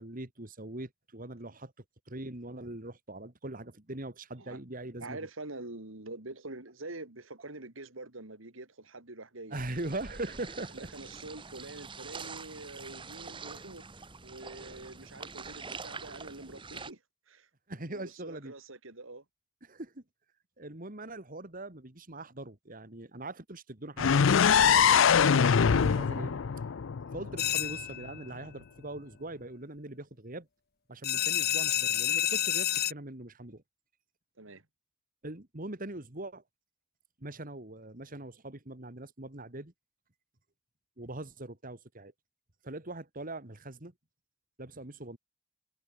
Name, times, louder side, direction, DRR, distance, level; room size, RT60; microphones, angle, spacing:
voice 1, 0.0-1.7 2.1-5.3 9.5-10.9 17.7-18.5 19.6-20.0 20.6-24.2 24.6-26.4 27.1-30.5 30.9-33.6 35.2-36.4 37.2-39.7 41.0-42.1 42.6-43.9 44.6-45.2, right 2 dB, 40° right, 2.5 m, -41 dB
voice 2, 5.0-9.6 10.7-13.8 14.2-17.0 17.3-17.5 17.9-19.2 27.3-27.5 34.4-34.6, right 2 dB, 70° right, 3.0 m, -45 dB
sound 1, 9.5-16.9, right 4 dB, 25° right, 1.5 m, -45 dB
sound 2, 24.0-27.8, left 7 dB, 65° left, 0.5 m, -23 dB
sound 3, 27.4-28.2 31.0-32.9, left 12 dB, 50° left, 1.8 m, -29 dB
head